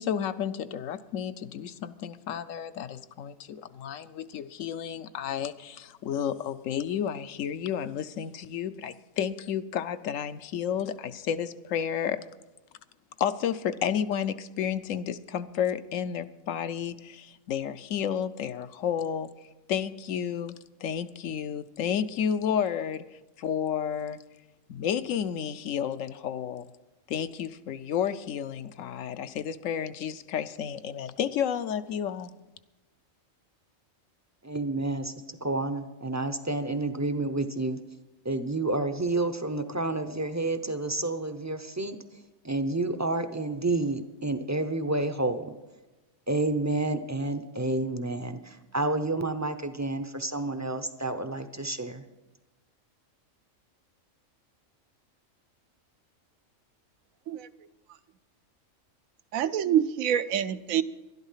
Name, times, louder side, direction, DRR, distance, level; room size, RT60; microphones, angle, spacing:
voice 1, 0.0-12.2 13.2-19.3 19.7-23.0 23.4-24.2 24.7-26.7 27.1-32.3, left 8 dB, 75° left, 12 dB, 1.0 m, -31 dB
voice 2, 34.4-37.8 38.2-45.5 46.3-52.0, right 2 dB, 25° right, 9 dB, 0.4 m, -30 dB
voice 3, 59.3-60.8, right 10 dB, 85° right, 12 dB, 1.1 m, -26 dB
12.0 x 11.5 x 5.6 m, 1.1 s
omnidirectional pair, 1.4 m